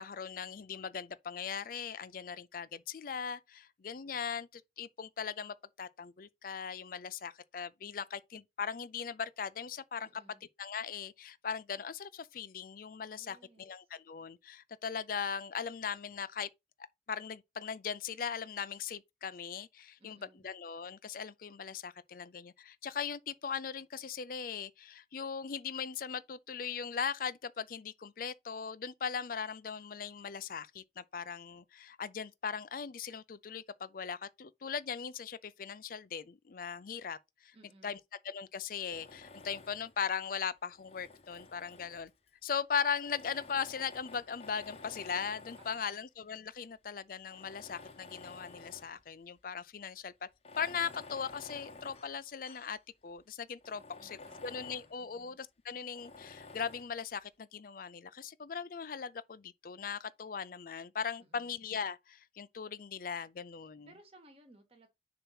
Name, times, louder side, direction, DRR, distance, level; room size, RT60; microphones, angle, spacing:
voice 1, 0.0-10.1 10.6-16.5 17.1-20.2 20.4-37.5 37.8-38.0 38.2-42.1 42.4-50.3 50.6-63.9, left 6 dB, 50° left, 0.5 m, -39 dB
voice 2, 10.0-10.4 13.1-13.9 20.0-20.5 37.5-38.0 45.6-46.0 53.7-55.4 61.2-61.6 63.8-64.9, right 2 dB, 35° right, 1.6 m, -61 dB
Tools, 38.9-40.0 40.7-42.3 43.0-45.9 46.6-46.7 47.2-49.0 49.4-49.5 50.3-52.8 53.2-53.3 53.6-55.0 55.9-57.0, left 3 dB, 35° left, 0.9 m, -52 dB
6.8 x 3.0 x 5.5 m
head